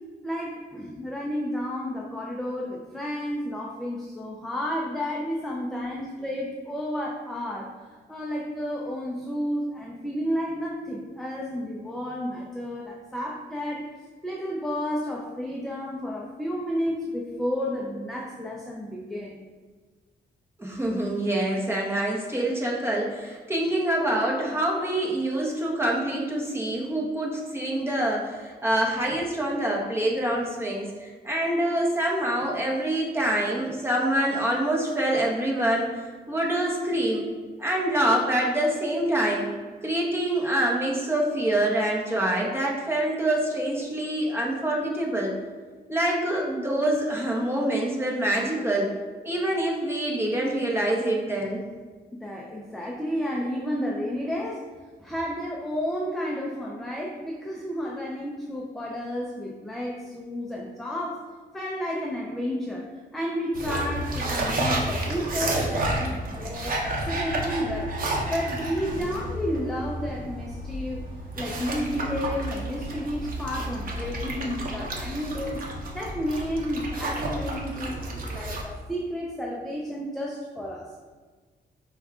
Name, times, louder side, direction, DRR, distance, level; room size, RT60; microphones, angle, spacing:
voice 1, 0.2-7.7 8.1-13.9 14.2-19.3 52.1-54.6 55.0-61.2 61.5-68.0 68.3-71.0 71.3-75.6 75.9-80.9, equal, ahead, -3 dB, 0.5 m, -31 dB
voice 2, 20.6-35.9 36.3-37.2 37.6-39.5 39.8-45.3 45.9-48.9 49.2-51.7, right 1 dB, 15° right, -2 dB, 1.0 m, -26 dB
sound 1, 63.5-78.6, right 1 dB, 55° right, 0.8 m, -31 dB
5.1 x 2.4 x 3.6 m, 1.4 s
cardioid pair, 85°, 17 cm